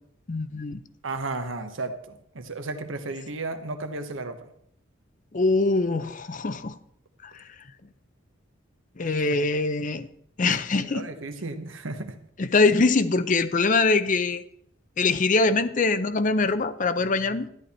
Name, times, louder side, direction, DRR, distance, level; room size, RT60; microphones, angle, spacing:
voice 1, 0.3-0.8 5.3-6.8 7.2-7.4 9.0-10.1 10.4-11.1 12.4-14.4 15.0-17.5, left 3 dB, 40° left, 13 dB, 0.6 m, -23 dB
voice 2, 1.0-4.5 9.3-9.4 10.8-12.2, right 3 dB, 80° right, 7 dB, 1.2 m, -34 dB
13.0 x 10.5 x 4.3 m, 0.69 s
head